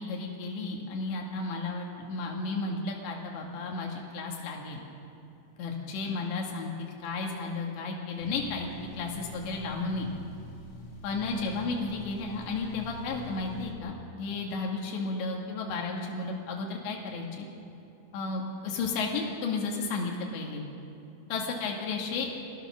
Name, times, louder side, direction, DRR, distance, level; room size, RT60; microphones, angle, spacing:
voice 1, 0.0-4.8 5.6-8.7 8.9-10.1 11.0-17.5 18.1-20.6 21.3-22.3, left 3 dB, 85° left, 0 dB, 4.2 m, -33 dB
sound 1, 8.2-13.7, equal, 35° left, 2.9 m, -45 dB
26.5 x 20.0 x 6.2 m, 2.7 s
omnidirectional pair, 4.9 m